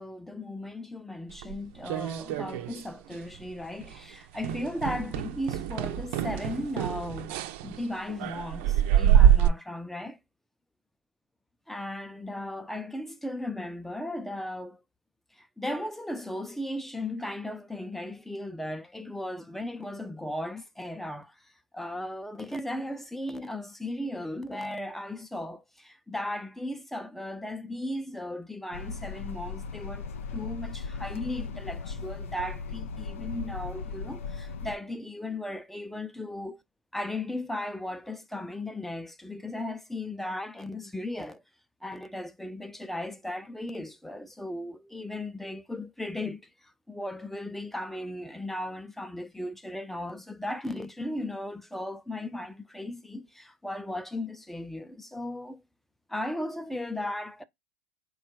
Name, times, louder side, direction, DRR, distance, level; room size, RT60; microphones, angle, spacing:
voice 1, 0.0-7.4 7.6-10.2 11.7-14.8 15.4-36.5 36.9-41.4 41.8-46.5 46.9-55.6 56.1-57.4, left 1 dB, 5° left, 0.5 m, -36 dB
sound 1, 1.4-2.9 3.1-3.5 3.8-4.0 4.4-9.5, right 10 dB, 60° right, 0.6 m, -25 dB
sound 2, 28.7-34.8, left 5 dB, 85° left, 0.5 m, -37 dB
4.2 x 2.3 x 4.4 m
hypercardioid pair, 100°, 7 cm